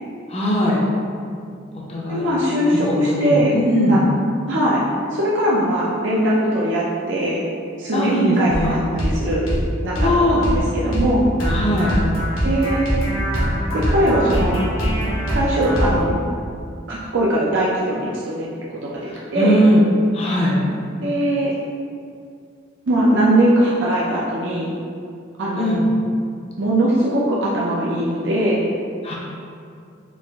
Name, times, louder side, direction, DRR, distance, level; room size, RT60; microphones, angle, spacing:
voice 1, 0.3-0.8 1.9-2.3 2.9-4.0 7.9-8.7 10.0-10.4 11.5-11.9 19.3-19.8 20.1-20.6 25.6-25.8 29.0-29.1, equal, 30° left, -5 dB, 0.6 m, -19 dB
voice 2, 2.1-3.5 3.9-4.0 4.5-4.8 5.1-7.4 7.8-9.5 9.8-11.3 12.4-13.0 13.7-14.6 15.3-16.2 16.9-19.7 21.0-21.6 22.9-24.7 25.4-25.8 26.6-28.6, right 1 dB, 60° right, -6 dB, 0.5 m, -20 dB
sound 1, 8.5-8.7 9.0-9.2 9.5-9.6 9.9-10.1 10.4-10.6 10.9-11.1 11.4-16.0, equal, 85° left, 1.2 m, -22 dB
4.7 x 2.5 x 3.5 m, 2.3 s
head